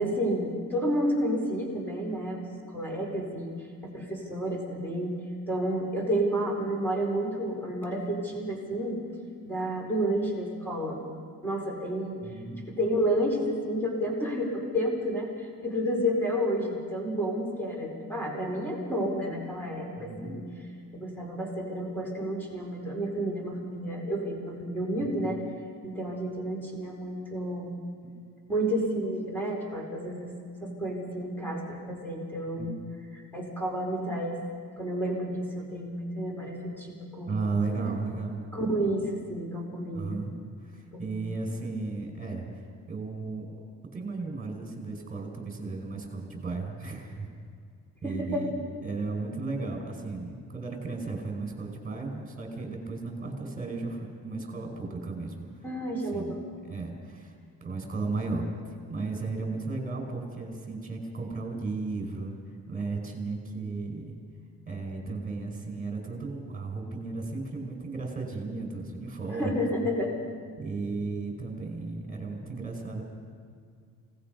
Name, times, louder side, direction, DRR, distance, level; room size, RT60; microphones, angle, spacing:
voice 1, 0.0-3.5 3.8-5.1 5.5-9.0 9.4-11.0 11.4-12.2 12.8-20.4 20.9-25.4 25.8-27.8 28.5-30.3 30.6-32.8 33.3-34.4 34.8-37.6 38.5-40.2 40.9-41.2 48.0-48.5 55.6-56.4 69.3-70.1, equal, 5° left, -1 dB, 4.5 m, -30 dB
voice 2, 12.2-12.6 20.0-20.3 25.0-25.1 28.0-28.1 32.6-32.7 37.3-38.5 39.9-42.6 42.9-43.5 43.9-47.3 48.0-48.5 48.8-55.5 56.1-57.3 57.6-64.1 64.7-69.6 70.6-73.0, right 3 dB, 25° right, 2 dB, 5.1 m, -35 dB
28.5 x 18.5 x 5.3 m, 2.2 s
cardioid pair, 135°, 30 cm